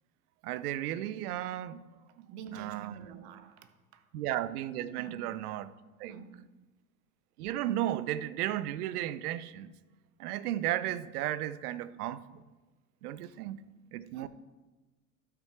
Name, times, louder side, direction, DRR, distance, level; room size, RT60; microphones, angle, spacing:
voice 1, 0.4-1.8 2.2-2.3 2.5-3.0 4.1-5.7 6.0-6.1 7.4-9.7 10.2-12.4 13.0-13.6 13.9-14.3, right 13 dB, 85° right, 0.6 m, -34 dB
voice 2, 2.0-4.1 5.0-5.3 6.0-6.7 13.2-13.4 14.1-14.3, right 8 dB, 65° right, 1.1 m, -47 dB
12.0 x 6.1 x 4.5 m
hypercardioid pair, 90°, 44 cm